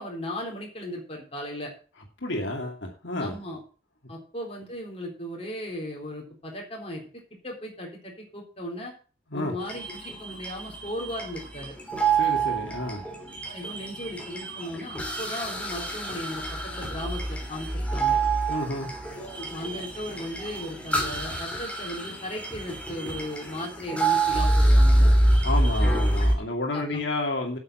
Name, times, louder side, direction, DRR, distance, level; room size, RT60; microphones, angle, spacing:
voice 1, 0.0-1.7 3.2-3.6 4.1-8.9 9.3-11.7 13.4-18.2 19.1-25.1 25.8-26.0 26.7-27.0, left 1 dB, 30° left, -1 dB, 3.9 m, -36 dB
voice 2, 2.2-3.4 9.3-9.5 12.1-13.0 18.5-18.9 25.4-27.6, left 2 dB, 75° left, 1 dB, 2.5 m, -30 dB
sound 1, 9.6-26.4, right 2 dB, 5° left, 2.9 m, -26 dB
8.9 x 7.3 x 7.6 m, 0.38 s
head